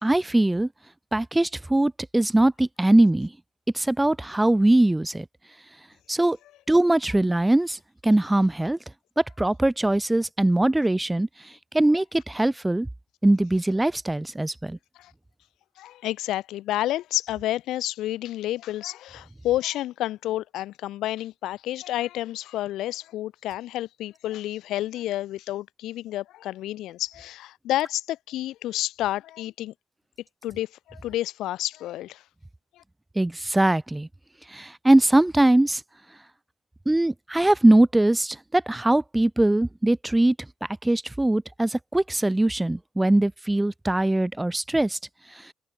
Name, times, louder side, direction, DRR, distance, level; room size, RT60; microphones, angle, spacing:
voice 1, 0.0-0.7 1.1-3.3 3.7-5.3 6.1-6.4 6.7-8.8 9.2-12.9 13.2-14.8 33.2-34.1 34.5-35.8 36.9-40.4 40.8-45.0 45.4-45.5, right 1 dB, 10° right, 0.8 m, -21 dB
voice 2, 15.8-29.7 30.4-32.2 32.7-32.8, left 14 dB, 80° left, 0.8 m, -30 dB
open air
cardioid pair, 110°, 0 cm